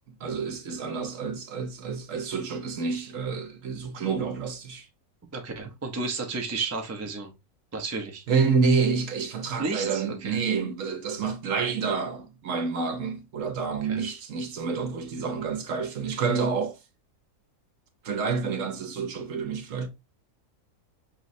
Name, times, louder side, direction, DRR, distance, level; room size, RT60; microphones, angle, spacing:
voice 1, 0.2-4.9 8.3-16.8 18.0-19.9, right 5 dB, 65° right, 1.1 m, -28 dB
voice 2, 5.3-7.3 7.7-8.2 9.6-10.4 13.8-14.0, right 4 dB, 20° right, 0.4 m, -32 dB
5.4 x 3.1 x 2.6 m
omnidirectional pair, 1.5 m